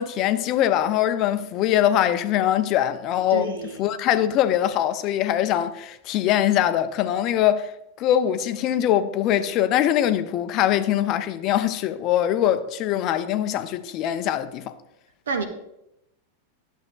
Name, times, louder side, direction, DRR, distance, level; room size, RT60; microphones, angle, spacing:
voice 1, 0.0-7.7 8.0-14.7, left 11 dB, 40° left, 0.5 m, -22 dB
voice 2, 3.3-3.7 15.3-15.4, right 4 dB, 65° right, 1.0 m, -27 dB
11.5 x 7.1 x 2.4 m
figure-of-eight pair, 90°, 0 cm